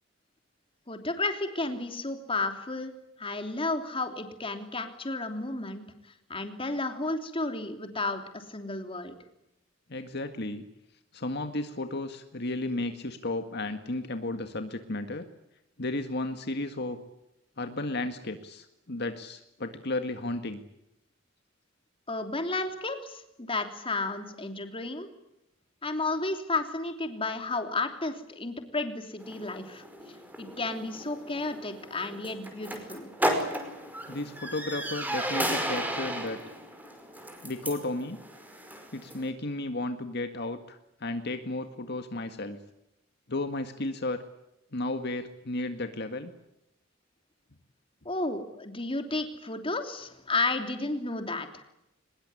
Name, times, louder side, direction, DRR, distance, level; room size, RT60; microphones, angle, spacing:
voice 1, 0.9-2.9 3.2-5.8 6.3-9.1 22.1-25.1 25.8-33.1 48.0-51.6, left 2 dB, 30° left, 7 dB, 3.1 m, -32 dB
voice 2, 9.9-10.6 11.1-15.3 15.8-17.0 17.6-20.6 34.1-36.4 37.4-38.2 38.9-42.6 43.3-44.2 44.7-46.3, left 2 dB, 60° left, 8 dB, 1.9 m, -33 dB
sound 1, 29.2-39.3, right 1 dB, 10° right, 5.2 m, -35 dB
23.5 x 21.5 x 9.8 m, 0.84 s
head